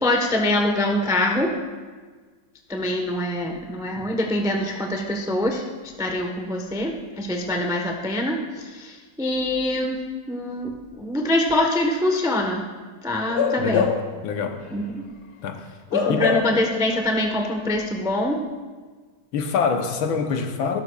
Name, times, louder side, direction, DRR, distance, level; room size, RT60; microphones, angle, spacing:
voice 1, 0.0-1.5 2.7-5.6 6.0-10.0 10.3-12.7 13.0-13.9 14.7-15.1 15.9-18.4, left 1 dB, 5° right, 1 dB, 0.5 m, -24 dB
Bark / Livestock farm animals working animals, 13.3-14.2 14.6-14.8 15.9-16.7 17.0-17.2, left 6 dB, 40° left, 1.3 m, -24 dB
voice 2, 13.6-14.0 14.2-14.6 15.4-15.6 16.1-16.3 19.3-20.8, left 5 dB, 75° left, 6 dB, 1.6 m, -25 dB
16.0 x 12.5 x 2.4 m, 1.4 s
omnidirectional pair, 2.3 m